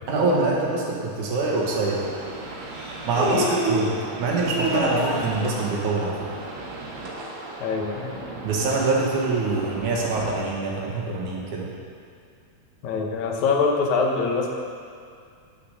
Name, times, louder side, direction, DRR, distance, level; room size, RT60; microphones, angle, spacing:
voice 1, 0.1-2.1 3.1-6.2 8.4-11.7, right 3 dB, 75° right, -2 dB, 2.9 m, -24 dB
Human voice, 1.3-1.4 2.7-3.9 4.4-5.4, right 1 dB, 25° right, 2.8 m, -26 dB
sound 1, 1.5-10.3, right 2 dB, 50° right, 1.6 m, -37 dB
voice 2, 7.6-8.1 12.8-14.5, left 4 dB, 75° left, 1 dB, 2.3 m, -24 dB
9.7 x 6.8 x 6.7 m, 2.3 s
omnidirectional pair, 3.5 m